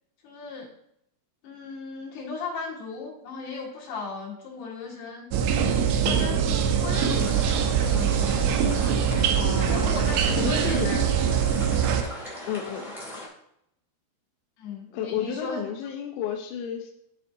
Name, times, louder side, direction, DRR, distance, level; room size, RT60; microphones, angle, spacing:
voice 1, 0.2-0.7 1.4-5.3 6.0-7.5 7.8-9.0 9.7-11.1 14.6-15.6, left 4 dB, 70° left, -5 dB, 3.8 m, -36 dB
sound 1, 5.3-12.0, right 7 dB, 80° right, 2.8 m, -23 dB
voice 2, 6.0-6.4 9.3-10.0 10.4-10.9 12.5-12.9 14.9-16.9, left 8 dB, 85° left, 2 dB, 3.0 m, -32 dB
sound 2, 6.9-13.3, left 1 dB, ahead, 0.6 m, -39 dB
12.5 x 4.2 x 2.7 m, 0.76 s
omnidirectional pair, 5.1 m